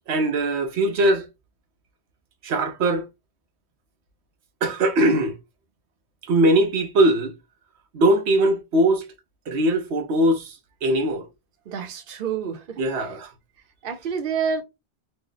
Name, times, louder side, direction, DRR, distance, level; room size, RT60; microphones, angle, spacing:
voice 1, 0.1-1.2 2.4-3.1 4.6-5.4 6.3-7.3 7.9-9.0 9.5-10.5 10.8-11.3 12.8-13.3, right 1 dB, 85° right, 1.0 m, -20 dB
voice 2, 11.7-13.1 13.8-14.6, right 6 dB, 60° right, 0.9 m, -28 dB
3.1 x 2.1 x 3.8 m
omnidirectional pair, 1.1 m